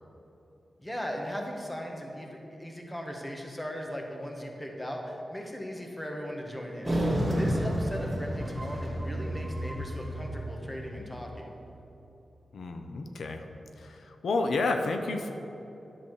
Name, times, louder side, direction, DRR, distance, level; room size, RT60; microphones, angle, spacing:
voice 1, 0.8-7.0 7.4-11.5, equal, 10° left, 1 dB, 1.3 m, -38 dB
sound 1, 6.9-11.4, equal, 10° right, 2.1 m, -31 dB
voice 2, 12.5-13.4 13.8-15.3, left 3 dB, 85° left, 5 dB, 0.7 m, -30 dB
11.0 x 7.2 x 4.7 m, 2.9 s
wide cardioid pair, 120°, 0 cm